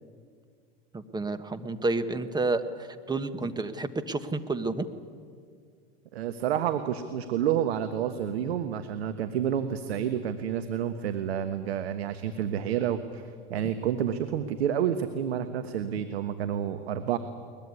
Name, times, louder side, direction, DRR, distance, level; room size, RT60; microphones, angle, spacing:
voice 1, 0.9-4.9, right 3 dB, 15° right, 10 dB, 1.3 m, -30 dB
voice 2, 6.1-13.2 13.5-17.2, right 9 dB, 85° right, 9 dB, 1.4 m, -29 dB
22.0 x 20.5 x 9.7 m, 2.1 s
supercardioid pair, 115°, 31 cm